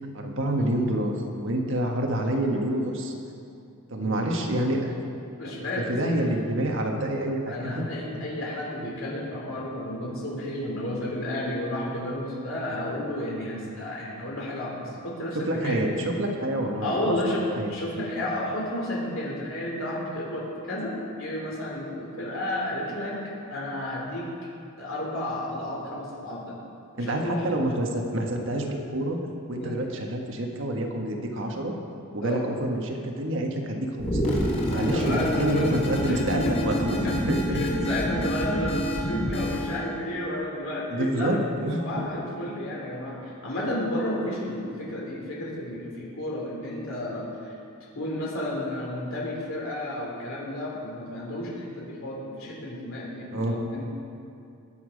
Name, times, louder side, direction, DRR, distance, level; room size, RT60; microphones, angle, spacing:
voice 1, 0.1-1.1 1.4-3.1 3.9-4.9 5.4-7.8 8.1-8.2 15.3-17.1 17.6-17.7 27.0-29.2 29.5-31.7 32.1-34.3 34.7-37.6 40.9-42.0 53.3-53.5, right 1 dB, 60° right, 1 dB, 1.5 m, -27 dB
voice 2, 5.4-6.1 7.5-15.8 16.8-23.2 23.5-24.3 24.8-26.5 27.0-27.4 29.6-29.8 32.2-32.5 34.7-35.7 36.0-36.6 36.9-37.2 37.5-41.4 41.8-47.5 47.9-53.8, left 1 dB, 65° left, -4 dB, 3.5 m, -32 dB
sound 1, 34.0-39.8, equal, 30° left, 3.1 m, -27 dB
19.5 x 7.2 x 5.2 m, 2.5 s
head